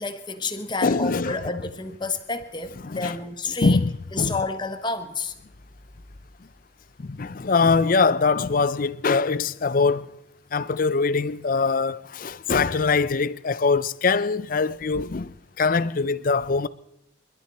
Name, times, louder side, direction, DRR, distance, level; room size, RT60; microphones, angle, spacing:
voice 1, 0.0-3.8 4.1-5.3, left 3 dB, 25° left, 1.1 m, -30 dB
voice 2, 0.8-1.5 2.8-3.2 3.6-4.4 7.0-10.1 10.5-16.7, left 4 dB, 45° left, 0.5 m, -23 dB
29.5 x 11.5 x 4.2 m
head